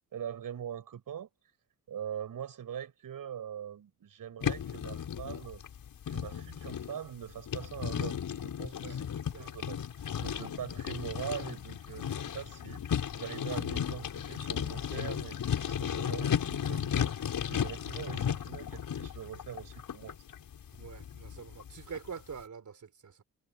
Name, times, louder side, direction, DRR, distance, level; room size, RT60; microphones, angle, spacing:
voice 1, 0.1-1.3 1.9-5.6 6.1-9.1 9.4-17.1 17.4-20.2, right 9 dB, 70° right, 6.4 m, -42 dB
sound 1, 4.4-22.1, left 8 dB, 75° left, 6.5 m, -35 dB
voice 2, 20.8-23.2, right 6 dB, 55° right, 4.6 m, -45 dB
cardioid pair, 55°, 34 cm